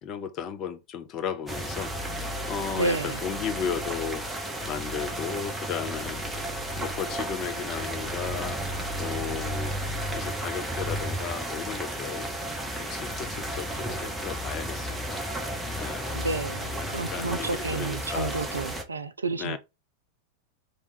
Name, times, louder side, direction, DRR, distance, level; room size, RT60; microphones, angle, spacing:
voice 1, 0.0-2.1 2.4-4.3 4.6-6.4 6.8-8.6 9.0-9.7 10.1-12.3 12.8-15.3 15.7-16.2 16.8-18.4 19.4-19.6, left 7 dB, 35° left, 0.7 m, -35 dB
sound 1, 1.5-18.8, right 1 dB, 5° right, 1.0 m, -33 dB
voice 2, 2.8-3.2 16.1-19.6, right 3 dB, 75° right, 0.4 m, -30 dB
3.5 x 3.3 x 4.1 m
figure-of-eight pair, 90°, 0 cm